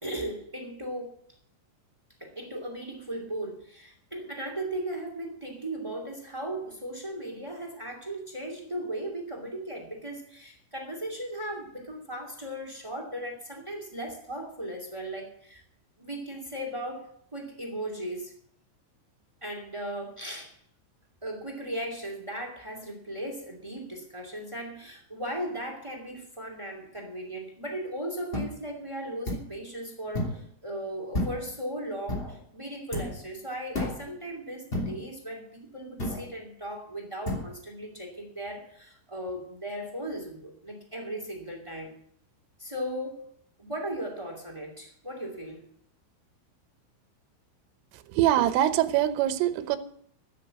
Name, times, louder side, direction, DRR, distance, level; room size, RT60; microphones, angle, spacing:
voice 1, 0.0-1.1 2.2-15.6 16.0-18.3 19.4-20.5 21.2-41.9 42.6-43.2 43.6-45.6, right 1 dB, 30° right, 3 dB, 0.5 m, -37 dB
sound 1, 28.3-28.5 29.3-29.5 30.1-30.4 31.1-31.5 32.1-32.4 32.9-33.2 33.7-34.1 34.7-35.0 36.0-36.3 37.2-37.5, left 1 dB, 15° left, 2.0 m, -31 dB
voice 2, 47.9-49.8, right 12 dB, 80° right, 10 dB, 3.5 m, -24 dB
13.0 x 9.5 x 7.6 m, 0.65 s
omnidirectional pair, 5.9 m